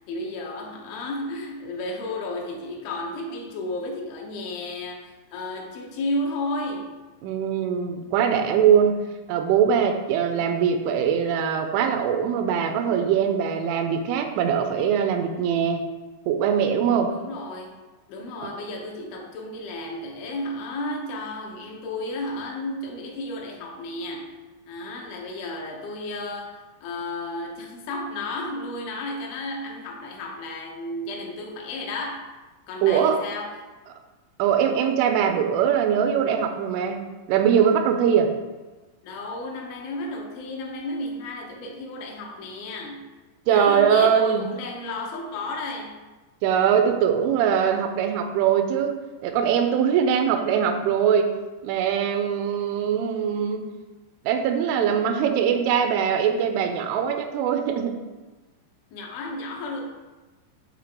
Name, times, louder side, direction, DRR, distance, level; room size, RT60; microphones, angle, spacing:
voice 1, 0.1-7.0 10.4-10.5 17.1-17.7 18.1-24.3 24.7-32.3 32.7-33.6 39.0-43.1 43.5-46.1 58.9-59.9, left 2 dB, 80° left, 0 dB, 3.3 m, -33 dB
voice 2, 7.2-15.8 16.3-17.1 32.8-33.2 34.4-37.0 37.3-38.3 43.5-44.5 46.4-51.3 51.6-53.7 54.3-58.0, right 8 dB, 85° right, 6 dB, 3.1 m, -22 dB
11.0 x 4.1 x 3.7 m, 1.2 s
omnidirectional pair, 5.6 m